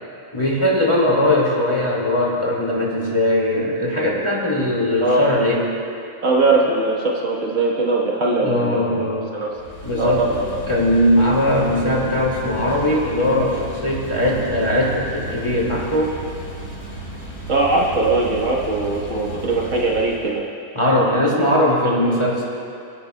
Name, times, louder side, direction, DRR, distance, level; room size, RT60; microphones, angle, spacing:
voice 1, 0.3-5.6 8.2-9.3 9.8-10.3 10.7-16.2 20.7-22.4, left 1 dB, 20° left, -4 dB, 2.2 m, -20 dB
voice 2, 5.0-5.7 6.2-8.8 9.3-9.6 10.0-10.6 17.5-20.4 21.9-22.0, right 2 dB, 70° right, -3 dB, 1.8 m, -20 dB
sound 1, 9.5-20.4, right 1 dB, 55° left, 4.0 m, -34 dB
26.0 x 10.0 x 2.3 m, 2.5 s
omnidirectional pair, 1.4 m